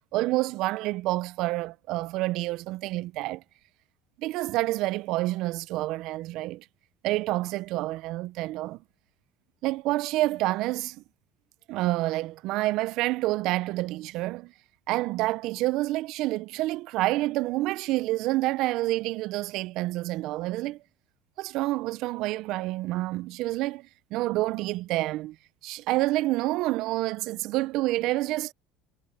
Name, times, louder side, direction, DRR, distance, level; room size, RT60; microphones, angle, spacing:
voice 1, 0.1-3.4 4.2-6.7 7.0-8.8 9.6-11.0 11.7-14.5 14.9-20.8 21.4-25.4 25.6-28.5, right 18 dB, 65° right, 0.5 m, -28 dB
supercardioid pair, 100°, 0 cm